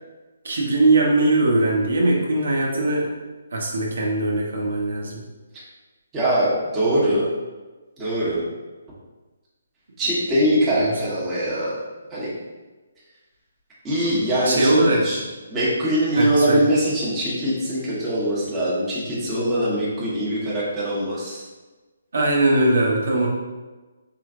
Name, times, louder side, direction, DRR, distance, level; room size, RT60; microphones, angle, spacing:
voice 1, 0.4-3.1 3.5-5.2 10.6-11.0 14.4-15.0 16.1-16.7 22.1-23.3, right 2 dB, 75° right, -2 dB, 0.9 m, -20 dB
voice 2, 6.1-7.3 8.0-8.4 10.0-11.7 12.1-12.3 13.8-15.2 15.5-21.4, right 1 dB, 15° right, -9 dB, 1.1 m, -22 dB
4.6 x 3.1 x 2.5 m, 1.2 s
hypercardioid pair, 155°, 0 cm